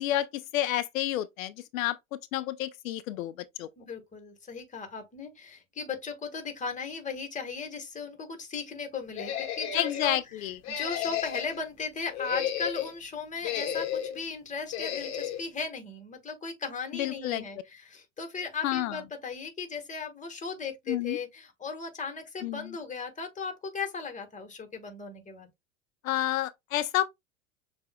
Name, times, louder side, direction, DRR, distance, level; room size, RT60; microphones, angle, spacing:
voice 1, 0.0-2.0 2.3-3.3 3.6-3.7 9.7-10.6 16.9-17.4 18.6-19.0 20.9-21.2 22.4-22.7 26.0-27.0, left 13 dB, 80° left, 0.5 m, -29 dB
voice 2, 3.8-25.5, left 4 dB, 20° left, 1.4 m, -37 dB
sound 1, 9.2-10.1 10.6-11.6 12.1-12.9 13.4-14.2 14.7-15.4, left 9 dB, 45° left, 1.1 m, -33 dB
6.7 x 2.6 x 2.2 m
hypercardioid pair, 95°, 40 cm